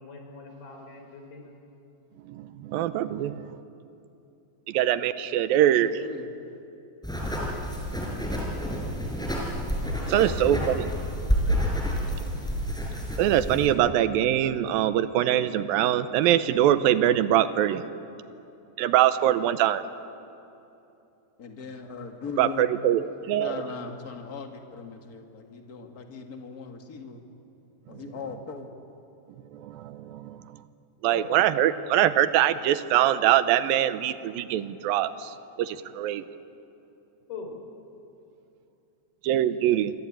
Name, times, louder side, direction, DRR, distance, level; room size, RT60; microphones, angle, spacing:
voice 1, 0.0-1.6 10.2-10.9 12.1-12.3 31.1-31.3 37.3-37.6, left 4 dB, 85° left, 3 dB, 5.7 m, -41 dB
voice 2, 2.3-3.6 4.7-6.0 10.1-10.8 13.2-17.9 18.8-19.8 22.4-23.6 27.9-28.0 29.5-30.6 31.0-36.2 39.2-39.9, right 11 dB, 80° right, 13 dB, 2.5 m, -23 dB
sound 1, 7.0-13.7, equal, ahead, 4.9 m, -29 dB
voice 3, 21.4-22.7 23.4-27.2 27.9-28.7, left 5 dB, 30° left, 4 dB, 1.9 m, -39 dB
28.0 x 24.5 x 8.8 m, 2.8 s
omnidirectional pair, 4.2 m